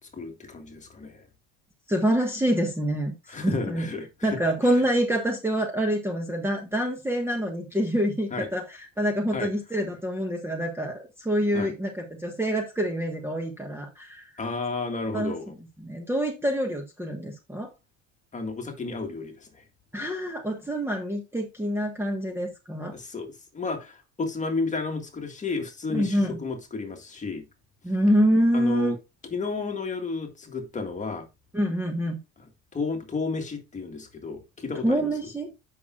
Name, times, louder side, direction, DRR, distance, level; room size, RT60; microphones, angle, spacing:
voice 1, 0.1-1.2 3.3-4.3 8.3-8.5 9.3-9.5 11.5-11.7 14.4-15.5 18.3-19.6 22.9-27.4 28.5-29.0 29.3-31.2 32.7-35.1, left 4 dB, 20° left, 1.8 m, -32 dB
voice 2, 1.9-3.9 4.2-14.3 15.1-15.3 15.8-17.7 19.9-22.9 25.9-26.4 27.8-28.9 31.5-32.2 34.8-35.5, equal, 5° right, 1.3 m, -26 dB
8.3 x 5.8 x 2.4 m
supercardioid pair, 115°, 33 cm